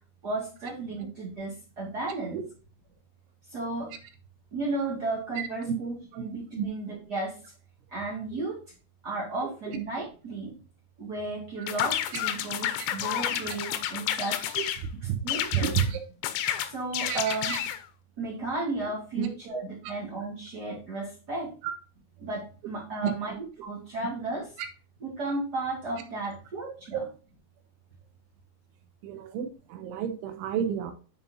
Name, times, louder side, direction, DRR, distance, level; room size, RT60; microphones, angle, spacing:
voice 1, 0.2-2.4 3.5-3.9 4.5-7.4 7.9-8.6 9.0-10.5 11.0-14.5 15.2-15.8 16.7-17.6 18.2-21.5 22.2-23.3 23.6-24.5 25.0-27.0, right 2 dB, 45° right, -5 dB, 1.3 m, -34 dB
voice 2, 2.1-2.4 5.4-5.7 6.1-6.2 6.5-6.7 8.3-8.4 9.7-9.8 11.6-11.7 12.8-12.9 13.5-13.6 14.6-14.7 15.0-15.2 15.5-16.0 17.1-17.6 19.2-19.3 19.8-19.9 21.6-21.7 23.0-23.1 26.5-26.6 29.0-30.9, right 9 dB, 85° right, 6 dB, 3.4 m, -31 dB
sound 1, 11.7-14.8 15.3-15.9 16.2-17.8, left 11 dB, 85° left, 3.1 m, -30 dB
9.7 x 5.4 x 2.6 m, 0.36 s
omnidirectional pair, 5.3 m